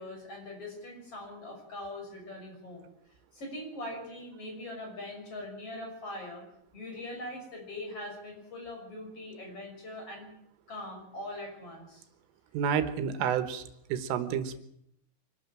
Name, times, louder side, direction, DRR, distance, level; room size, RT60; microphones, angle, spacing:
voice 1, 0.0-2.9 3.3-6.4 6.7-10.3 10.7-12.0, left 1 dB, 30° left, 2 dB, 6.9 m, -42 dB
voice 2, 12.5-13.6 13.9-14.6, right 8 dB, 85° right, 10 dB, 3.8 m, -29 dB
25.5 x 13.0 x 9.0 m, 0.74 s
omnidirectional pair, 5.7 m